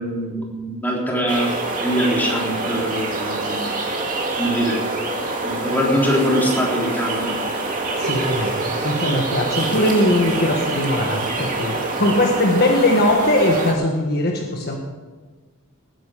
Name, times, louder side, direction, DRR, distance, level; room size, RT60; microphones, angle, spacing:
voice 1, 0.0-1.5 1.8-3.6 4.4-4.8 5.4-7.4, equal, 10° left, -4 dB, 3.7 m, -22 dB
sound 1, 1.3-13.7, right 2 dB, 40° right, 2.2 m, -25 dB
voice 2, 8.0-14.8, left 1 dB, 50° left, 2 dB, 1.5 m, -20 dB
19.5 x 9.9 x 5.0 m, 1.3 s
head